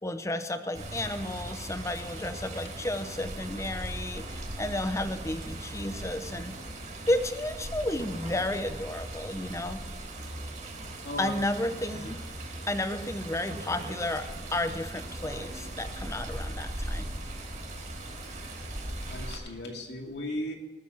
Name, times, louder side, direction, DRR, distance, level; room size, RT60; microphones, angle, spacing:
voice 1, 0.0-6.6 7.1-9.8 11.2-12.2 12.7-17.0, left 1 dB, 15° left, 9 dB, 0.8 m, -32 dB
Water, 0.7-19.4, right 1 dB, 45° right, 4.1 m, -39 dB
voice 2, 11.0-11.3 18.8-20.5, left 1 dB, 70° left, 1 dB, 2.5 m, -36 dB
20.0 x 6.9 x 7.4 m, 1.2 s
head